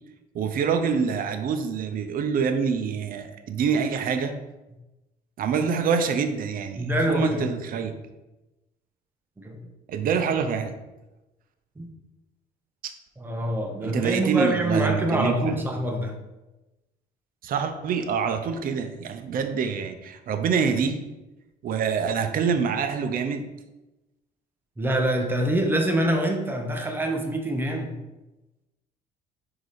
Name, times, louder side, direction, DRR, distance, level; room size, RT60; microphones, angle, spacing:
voice 1, 0.3-4.3 5.4-8.0 9.9-10.7 12.8-12.9 13.8-15.6 17.4-21.0 21.6-23.5, right 6 dB, 55° right, 7 dB, 0.7 m, -26 dB
voice 2, 6.7-7.5 9.4-9.6 11.8-11.9 13.2-16.2 24.8-28.0, right 1 dB, 10° right, 3 dB, 1.0 m, -25 dB
4.9 x 4.8 x 4.1 m, 1.0 s
cardioid pair, 110°, 17 cm